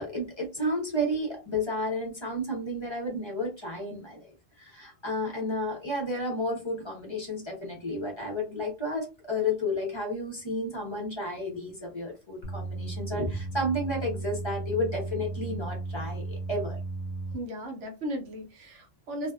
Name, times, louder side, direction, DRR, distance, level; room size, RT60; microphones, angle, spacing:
voice 1, 0.0-4.3 4.6-16.8, left 1 dB, 25° left, -2 dB, 0.8 m, -32 dB
sound 1, 12.4-17.3, right 3 dB, 75° left, 0.9 m, -35 dB
voice 2, 17.3-19.3, equal, 75° right, 3 dB, 1.0 m, -36 dB
2.6 x 2.3 x 2.2 m, 0.27 s
omnidirectional pair, 1.2 m